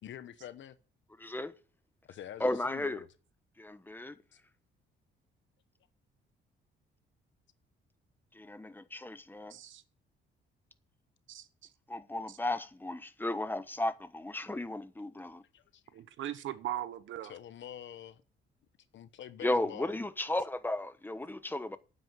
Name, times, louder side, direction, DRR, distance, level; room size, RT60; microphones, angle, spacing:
voice 1, 0.0-0.7 2.0-3.1 15.5-16.0 17.3-18.2 18.9-20.0, left 10 dB, 70° left, 1.2 m, -46 dB
voice 2, 1.2-1.5 2.4-3.0 3.6-4.2 8.3-9.6 11.9-15.4 19.4-21.8, left 1 dB, 10° left, 1.1 m, -34 dB
voice 3, 9.5-9.8 11.3-11.7 12.3-12.4 15.9-17.3, right 12 dB, 75° right, 1.1 m, -39 dB
9.3 x 8.4 x 9.0 m
cardioid pair, 90°, 20 cm